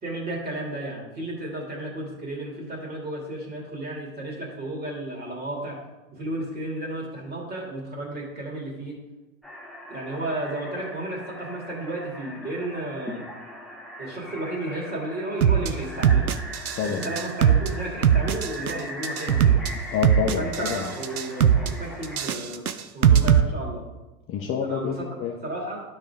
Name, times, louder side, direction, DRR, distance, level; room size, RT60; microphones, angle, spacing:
voice 1, 0.0-5.8 6.1-9.0 9.9-13.2 14.0-16.3 16.7-19.6 20.4-22.6 22.9-23.8 24.6-24.9 25.4-25.8, right 1 dB, 20° right, -1 dB, 2.5 m, -33 dB
sound 1, 9.4-22.3, equal, ahead, 1.1 m, -40 dB
sound 2, 15.4-15.7 16.0-16.8 17.0-17.7 18.0-18.7 19.0-19.7 20.0-20.8 21.0-21.7 22.0-23.4, right 9 dB, 90° right, 0.6 m, -19 dB
voice 2, 16.7-17.1 19.9-20.9 24.3-25.3, left 7 dB, 30° left, 2 dB, 0.8 m, -28 dB
12.0 x 5.3 x 3.6 m, 1.1 s
figure-of-eight pair, 90°, 43 cm